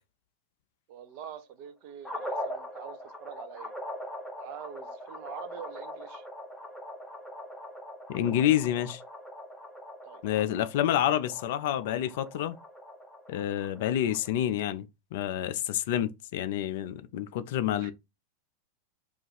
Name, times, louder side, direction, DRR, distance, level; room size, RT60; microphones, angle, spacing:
voice 1, 0.9-3.7 4.4-6.3 10.0-10.2 17.8-17.9, right 8 dB, 45° right, 0.4 m, -45 dB
sound 1, 2.0-14.3, left 1 dB, 5° left, 0.6 m, -42 dB
voice 2, 8.1-9.0 10.2-12.6 13.3-17.9, left 11 dB, 50° left, 0.3 m, -28 dB
2.4 x 2.3 x 4.0 m
figure-of-eight pair, 90°, 0 cm